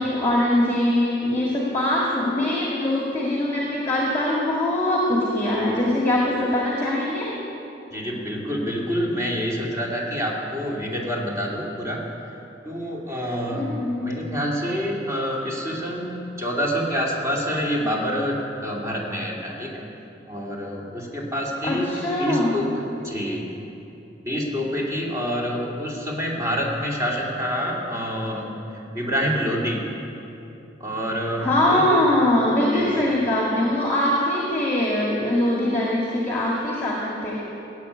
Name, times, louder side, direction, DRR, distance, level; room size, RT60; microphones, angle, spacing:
voice 1, 0.0-7.3 13.5-14.1 21.6-22.7 31.4-37.4, left 1 dB, 15° left, -4 dB, 2.1 m, -22 dB
voice 2, 7.9-12.1 12.6-13.7 14.0-19.9 20.3-21.9 22.2-23.5 24.3-29.8 30.8-32.0 32.7-33.1, equal, 20° right, -3 dB, 2.4 m, -27 dB
16.5 x 8.3 x 9.7 m, 2.9 s
head